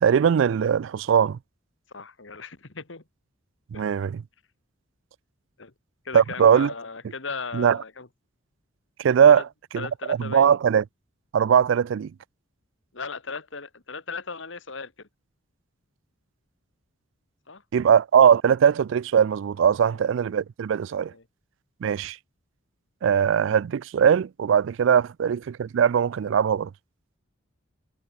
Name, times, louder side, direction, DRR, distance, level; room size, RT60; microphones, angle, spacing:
voice 1, 0.0-1.4 3.7-4.2 6.1-6.7 7.5-7.8 9.0-9.5 9.7-10.8 11.3-12.1 17.7-21.1 21.8-22.2 23.0-26.7, right 8 dB, 65° right, 0.3 m, -20 dB
voice 2, 1.9-3.0 3.7-3.8 5.6-5.7 6.1-8.1 9.3-9.4 9.8-10.6 12.9-15.1 17.5-17.6 19.8-20.0 21.1-21.2, left 4 dB, 65° left, 1.9 m, -37 dB
head